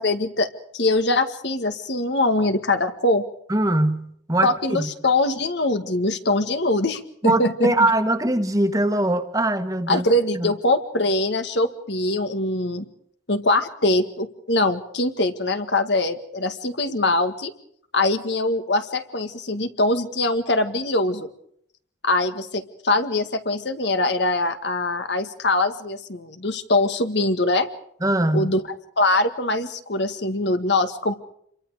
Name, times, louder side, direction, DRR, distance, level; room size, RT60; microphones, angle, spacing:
voice 1, 0.0-3.2 4.4-7.7 9.9-12.9 13.3-17.5 17.9-21.3 22.0-27.7 28.3-28.6 29.0-31.1, left 2 dB, 70° left, 8 dB, 1.8 m, -23 dB
voice 2, 3.5-4.9 7.2-10.0 10.3-10.5 28.0-28.5, right 1 dB, 20° right, 8 dB, 1.5 m, -22 dB
27.5 x 23.5 x 5.0 m, 0.68 s
head